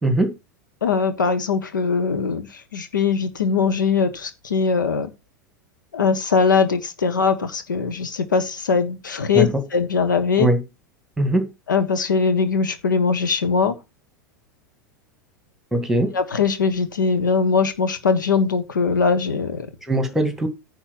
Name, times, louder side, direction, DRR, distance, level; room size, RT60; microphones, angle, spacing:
voice 1, 0.0-0.3 9.3-9.6 10.4-10.6 11.2-11.5 15.7-16.2 19.8-20.5, right 1 dB, 5° right, 2.1 m, -20 dB
voice 2, 0.8-5.1 5.9-10.5 11.7-13.8 16.1-19.7, left 5 dB, 75° left, 1.3 m, -21 dB
10.0 x 4.5 x 6.0 m
figure-of-eight pair, 85°, 10 cm